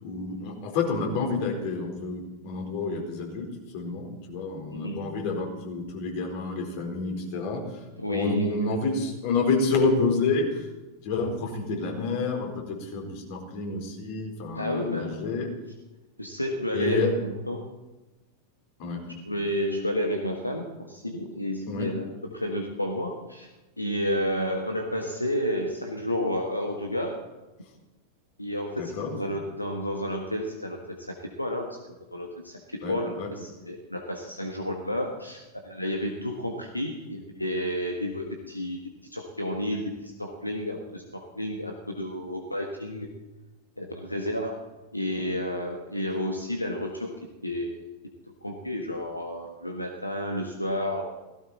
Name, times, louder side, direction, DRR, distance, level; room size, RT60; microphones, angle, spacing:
voice 1, 0.0-3.5 3.7-7.6 8.1-10.7 11.0-15.5 16.7-17.1 18.8-19.1 21.7-21.9 28.8-29.1 32.8-33.3, left 3 dB, 50° left, 2 dB, 4.4 m, -29 dB
voice 2, 4.7-5.1 8.0-8.8 14.5-15.4 16.2-17.7 19.3-23.5 23.8-27.2 28.4-31.8 32.1-38.8 39.1-43.1 43.8-44.6 44.9-47.1 47.4-47.9 48.4-51.0, equal, 85° left, 3 dB, 1.5 m, -31 dB
17.0 x 16.0 x 4.3 m, 1.1 s
figure-of-eight pair, 90°, 0 cm